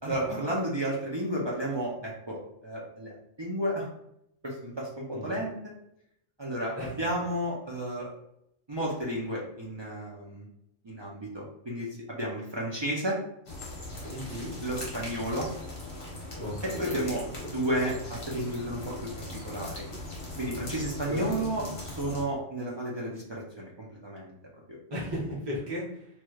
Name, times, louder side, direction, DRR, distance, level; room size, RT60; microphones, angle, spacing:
voice 1, 0.0-3.1 3.4-3.9 4.4-5.5 6.4-8.1 8.7-10.5 10.8-13.2 14.6-15.5 16.6-17.2 17.5-18.9 19.4-19.8 20.4-24.3 24.7-24.8, right 1 dB, 40° right, -4 dB, 0.4 m, -32 dB
voice 2, 5.1-5.4 6.7-7.0 14.1-14.5 16.4-17.0 21.1-21.3 24.9-26.1, equal, 20° right, -7 dB, 1.1 m, -35 dB
sound 1, 13.5-22.2, left 1 dB, 50° left, 1.2 m, -40 dB
3.1 x 3.1 x 2.3 m, 0.76 s
omnidirectional pair, 1.3 m